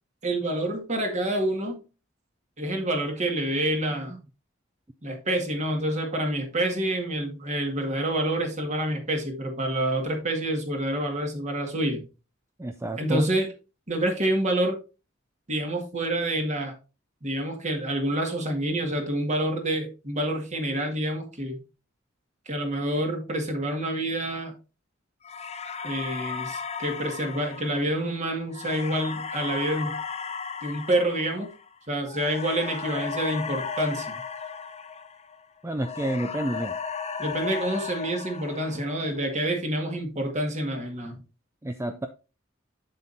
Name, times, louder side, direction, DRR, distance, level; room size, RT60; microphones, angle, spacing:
voice 1, 0.2-1.8 2.6-4.2 5.0-12.0 13.0-13.5 13.9-14.8 15.5-16.7 17.2-21.6 22.5-24.5 25.8-30.0 30.6-31.5 31.9-34.2 37.2-41.2, right 1 dB, 35° right, 1.9 m, -27 dB
voice 2, 12.6-13.3 35.6-36.8 41.6-42.1, right 1 dB, 15° right, 0.4 m, -29 dB
sound 1, 25.2-35.4 35.8-39.2, left 6 dB, 35° left, 0.7 m, -35 dB
7.5 x 7.4 x 2.7 m
head